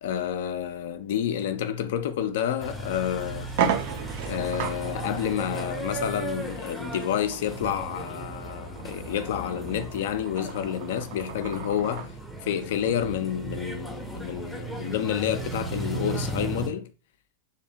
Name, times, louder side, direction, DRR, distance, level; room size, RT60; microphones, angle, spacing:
voice 1, 0.0-3.5 4.3-12.2 12.4-16.9, left 9 dB, 55° left, 0.3 m, -29 dB
sound 1, 2.5-2.6 3.1-3.2 3.5-12.1, right 8 dB, 50° right, 0.4 m, -35 dB
sound 2, 2.6-16.7, right 2 dB, ahead, 0.5 m, -36 dB
2.7 x 2.1 x 2.6 m
figure-of-eight pair, 90°, 0 cm